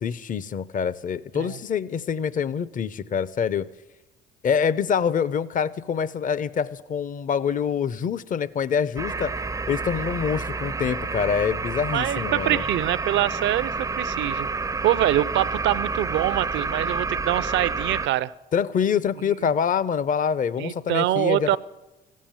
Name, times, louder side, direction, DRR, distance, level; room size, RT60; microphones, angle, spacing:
voice 1, 0.0-3.7 4.4-9.3 9.7-12.6 18.5-21.6, left 7 dB, 40° left, 17 dB, 0.6 m, -25 dB
sound 1, 9.0-18.1, right 4 dB, 15° right, 0.4 m, -29 dB
voice 2, 11.9-14.5 14.8-18.3 19.3-19.4 20.6-21.6, right 13 dB, 65° right, 18 dB, 0.5 m, -24 dB
14.5 x 7.5 x 8.9 m, 1.0 s
supercardioid pair, 70°, 20 cm